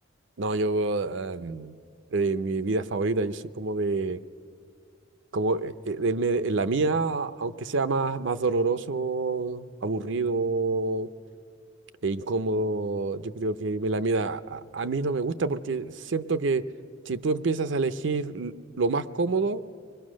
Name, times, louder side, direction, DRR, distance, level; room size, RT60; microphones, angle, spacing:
voice 1, 0.4-1.8 2.1-4.2 5.3-11.1 12.0-16.6 17.1-19.6, right 3 dB, 70° right, 12 dB, 0.6 m, -27 dB
25.5 x 21.0 x 6.3 m, 2.2 s
head